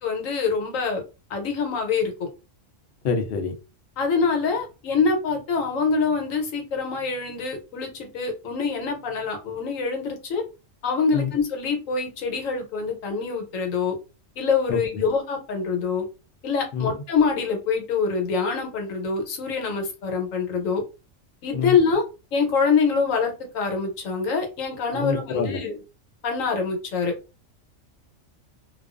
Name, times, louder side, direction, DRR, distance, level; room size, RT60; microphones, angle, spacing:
voice 1, 0.0-1.0 1.3-2.3 4.0-10.4 10.8-13.9 14.4-16.0 16.4-20.8 21.4-22.0 22.3-25.8 26.2-27.1, left 5 dB, 80° left, 1.1 m, -25 dB
voice 2, 3.0-3.5 11.1-11.3 14.7-15.0 16.7-16.9 21.5-21.8 24.9-25.6, left 5 dB, 60° left, 0.7 m, -26 dB
2.3 x 2.3 x 2.4 m
omnidirectional pair, 1.4 m